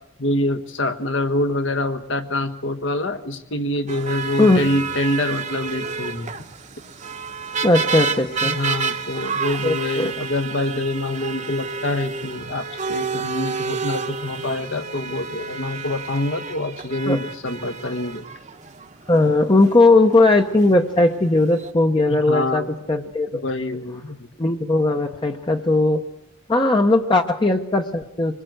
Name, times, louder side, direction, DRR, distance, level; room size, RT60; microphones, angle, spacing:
voice 1, 0.2-6.3 8.4-18.3 22.0-22.7 23.3-24.3, left 1 dB, 65° left, 9 dB, 1.3 m, -26 dB
sound 1, 3.9-21.7, right 5 dB, 35° right, 1.0 m, -30 dB
voice 2, 7.6-8.6 9.6-10.1 17.1-17.2 19.1-23.4 24.4-26.0 26.5-28.4, left 2 dB, 25° left, 5 dB, 0.8 m, -18 dB
25.0 x 20.5 x 7.9 m, 0.84 s
head